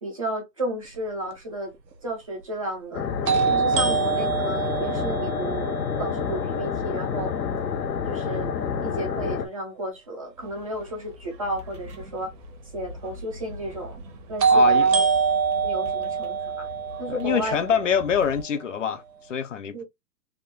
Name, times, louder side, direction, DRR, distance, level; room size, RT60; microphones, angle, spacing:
voice 1, 0.0-1.7 2.0-3.1 3.5-5.7 6.0-7.3 8.1-8.5 8.8-12.3 12.7-14.0 14.3-15.0 15.6-16.7 17.0-17.6 19.7-19.9, right 1 dB, 20° right, 0.5 m, -32 dB
sound 1, 1.3-1.4 3.3-7.2 14.4-18.4, right 6 dB, 80° right, 1.1 m, -25 dB
sound 2, 2.9-9.5, left 6 dB, 70° left, 0.9 m, -28 dB
sound 3, 10.4-18.4, equal, 45° right, 1.2 m, -43 dB
voice 2, 14.5-14.9 17.1-19.9, left 7 dB, 50° left, 0.6 m, -25 dB
3.5 x 2.1 x 3.5 m
hypercardioid pair, 150°, 50 cm